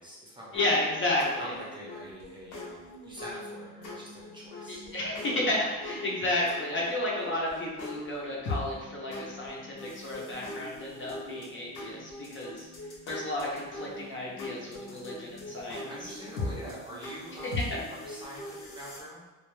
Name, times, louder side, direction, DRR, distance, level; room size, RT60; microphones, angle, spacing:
voice 1, 0.0-0.8 1.4-4.9 15.9-19.2, equal, 15° right, -7 dB, 0.6 m, -45 dB
sound 1, 0.5-19.0, left 2 dB, 70° left, 0.7 m, -41 dB
voice 2, 0.5-1.5 4.7-12.7 13.1-16.1 17.7-17.8, left 1 dB, 35° left, -4 dB, 0.6 m, -32 dB
2.3 x 2.2 x 3.1 m, 1.2 s
cardioid pair, 130°, 33 cm